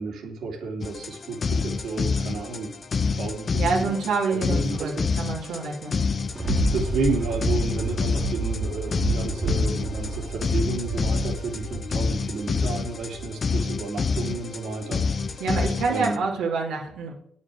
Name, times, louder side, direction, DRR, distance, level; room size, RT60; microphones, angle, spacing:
voice 1, 0.0-2.7 3.0-3.9 4.3-4.9 6.7-15.4 15.9-16.2, right 3 dB, 70° right, 2 dB, 3.0 m, -31 dB
sound 1, 0.8-16.2, left 4 dB, 40° left, 0.7 m, -28 dB
voice 2, 3.6-4.9 5.2-6.0 15.4-17.1, right 4 dB, 85° right, -3 dB, 2.7 m, -27 dB
Thunder, 6.0-13.5 14.0-14.1, right 3 dB, 35° right, 2.0 m, -30 dB
8.9 x 7.3 x 7.8 m, 0.66 s
cardioid pair, 90°, 0 cm